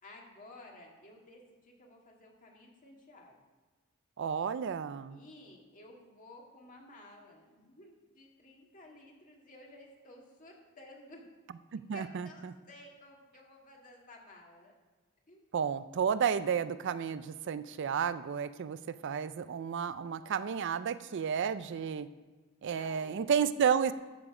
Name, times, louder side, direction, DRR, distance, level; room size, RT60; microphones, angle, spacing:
voice 1, 0.0-3.4 5.1-11.2 11.9-14.7 15.3-15.4 22.6-23.2, left 2 dB, 40° left, 0 dB, 2.1 m, -54 dB
voice 2, 4.2-5.2 11.7-12.5 15.5-22.1 22.6-23.9, right 7 dB, 60° right, 13 dB, 0.4 m, -32 dB
12.5 x 7.2 x 4.9 m, 1.3 s
head